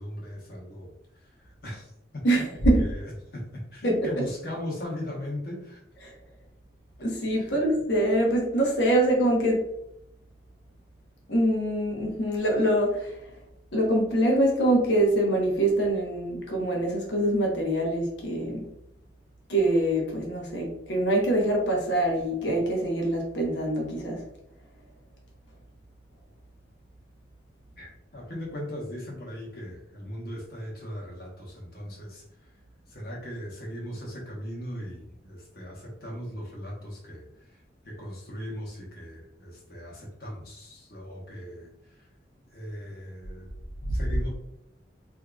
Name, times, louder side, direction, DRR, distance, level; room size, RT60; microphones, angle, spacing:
voice 1, 0.0-5.8 7.4-7.6 27.8-32.5 32.9-37.6 37.8-42.1 42.5-43.5 43.9-44.3, left 1 dB, 55° left, -2 dB, 1.1 m, -39 dB
voice 2, 2.2-2.9 3.8-4.2 6.0-6.1 7.0-9.7 11.3-13.1 13.7-18.7 19.5-24.2, right 1 dB, 80° left, 0 dB, 1.0 m, -24 dB
3.6 x 2.8 x 2.3 m, 0.81 s
head